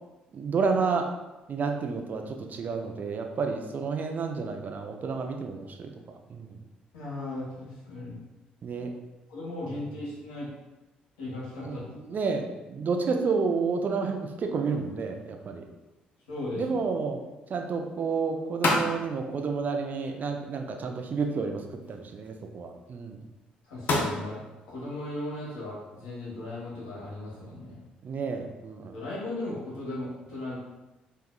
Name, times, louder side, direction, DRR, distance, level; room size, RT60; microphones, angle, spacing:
voice 1, 0.3-1.1 1.5-5.9 6.3-6.6 8.6-8.9 11.6-15.6 16.6-17.2 17.5-21.6 21.9-23.2 28.0-28.9, right 5 dB, 45° right, 4 dB, 0.5 m, -30 dB
voice 2, 6.9-8.2 9.3-10.5 11.2-11.8 16.3-16.6 23.6-27.8 28.9-30.6, left 2 dB, 75° left, -6 dB, 1.5 m, -37 dB
sound 1, 14.7-27.4, left 2 dB, 55° left, 0.8 m, -37 dB
4.4 x 3.5 x 2.3 m, 1.1 s
figure-of-eight pair, 45°, 4 cm